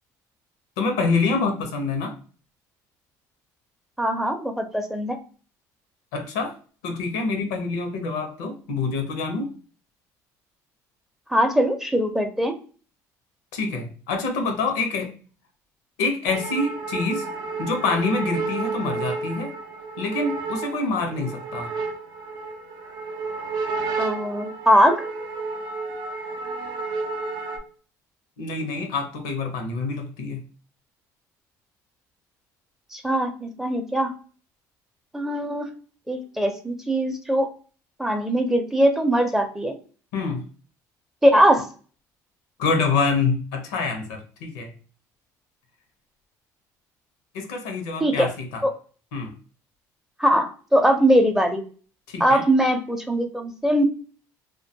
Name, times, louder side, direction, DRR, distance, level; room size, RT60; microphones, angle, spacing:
voice 1, 0.8-2.1 6.1-6.5 6.8-9.5 13.5-15.1 16.0-17.2 17.6-19.5 20.0-21.7 28.4-30.4 40.1-40.4 42.6-44.7 47.3-48.6 49.1-49.3 52.1-52.4, left 4 dB, 85° left, 5 dB, 0.6 m, -26 dB
voice 2, 4.0-5.2 11.3-12.5 24.0-25.1 32.9-34.1 35.1-35.7 36.1-37.5 38.0-39.7 41.2-41.7 48.0-48.3 48.6-48.8 50.2-51.6 52.2-53.8, equal, 5° right, 6 dB, 0.5 m, -21 dB
sound 1, 16.3-27.6, right 4 dB, 65° right, 0.5 m, -31 dB
2.3 x 2.2 x 2.6 m, 0.39 s
supercardioid pair, 75°, 8 cm